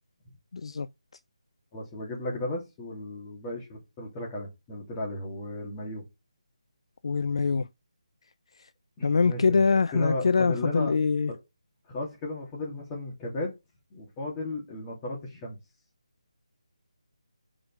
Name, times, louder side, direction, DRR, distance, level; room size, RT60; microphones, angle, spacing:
voice 1, 0.5-0.9 7.0-7.7 9.0-11.3, left 4 dB, 55° left, 0.4 m, -24 dB
voice 2, 1.7-6.0 9.0-9.6 9.9-10.9 11.9-13.5 13.9-15.6, left 1 dB, 15° left, 2.8 m, -35 dB
5.3 x 5.1 x 4.9 m
figure-of-eight pair, 160°, 3 cm